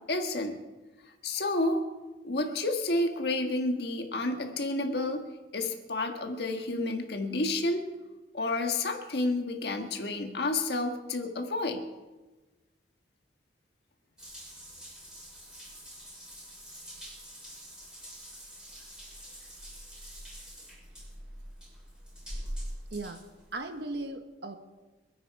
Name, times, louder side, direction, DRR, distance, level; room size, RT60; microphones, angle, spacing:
voice 1, 0.1-0.6 1.2-1.8 2.2-5.3 5.5-7.9 8.3-11.8, left 2 dB, 60° left, 4 dB, 1.6 m, -30 dB
Water tap faucet / Bathtub (filling or washing) / Drip, 14.2-24.0, equal, 5° right, 7.2 m, -44 dB
voice 2, 22.9-23.2 23.5-24.6, right 2 dB, 65° right, 6 dB, 1.4 m, -37 dB
27.0 x 10.0 x 4.8 m, 1.2 s
head